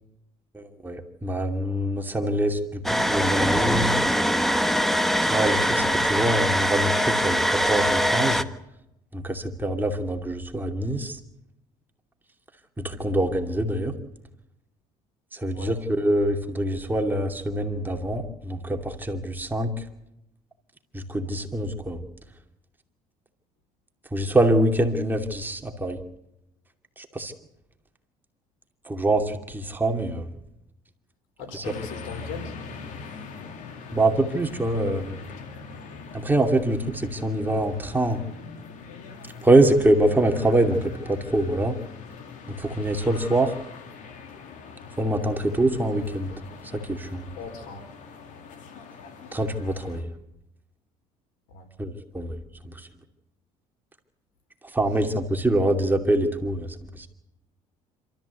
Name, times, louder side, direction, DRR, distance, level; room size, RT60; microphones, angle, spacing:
voice 1, 0.5-4.0 5.3-8.4 9.1-11.2 12.8-13.9 15.3-19.8 20.9-22.0 24.1-26.0 27.0-27.3 28.8-30.3 31.5-31.6 33.9-35.2 36.1-38.2 39.4-41.8 42.5-43.5 45.0-46.3 46.7-47.3 49.3-50.1 51.8-52.9 54.7-57.1, right 1 dB, 15° right, 4 dB, 2.6 m, -24 dB
sound 1, 2.8-8.4, equal, ahead, 1.2 m, -22 dB
voice 2, 31.4-32.6 47.4-47.9 51.5-51.7, left 5 dB, 90° left, 7 dB, 4.4 m, -38 dB
sound 2, 31.6-50.0, left 5 dB, 65° left, 3.1 m, -42 dB
27.5 x 14.0 x 8.2 m, 0.85 s
cardioid pair, 110°, 14 cm